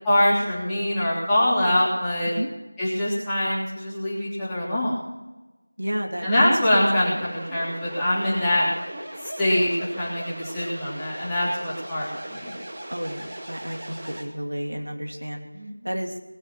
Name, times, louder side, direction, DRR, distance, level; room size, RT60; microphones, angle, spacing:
voice 1, 0.0-2.3 2.8-5.0 6.2-8.7 9.4-12.5 15.5-15.8, left 1 dB, 5° left, -11 dB, 3.4 m, -23 dB
voice 2, 5.8-6.5 7.1-7.3 12.9-15.5 15.8-16.2, equal, 75° right, 3 dB, 2.9 m, -31 dB
sound 1, 6.1-14.2, right 1 dB, 25° right, 2.2 m, -38 dB
21.5 x 8.1 x 7.2 m, 1.1 s
figure-of-eight pair, 175°, 0 cm